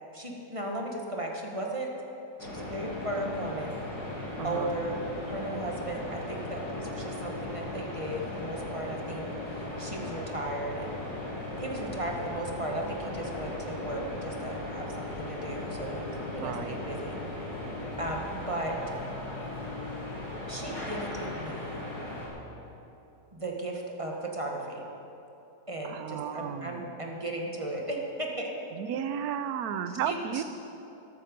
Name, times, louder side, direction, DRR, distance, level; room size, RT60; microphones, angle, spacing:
voice 1, 0.1-1.9 2.4-3.8 4.0-10.9 11.6-17.6 18.0-18.8 20.5-21.9 23.3-24.8 25.7-28.5 29.9-30.4, right 1 dB, 20° right, 0 dB, 1.3 m, -36 dB
sound 1, 2.4-22.3, left 1 dB, 75° left, 3.5 m, -37 dB
voice 2, 4.4-4.7 16.4-16.8 25.8-26.9 28.7-30.4, right 8 dB, 70° right, 10 dB, 1.2 m, -33 dB
14.0 x 12.0 x 5.3 m, 2.9 s
omnidirectional pair, 1.7 m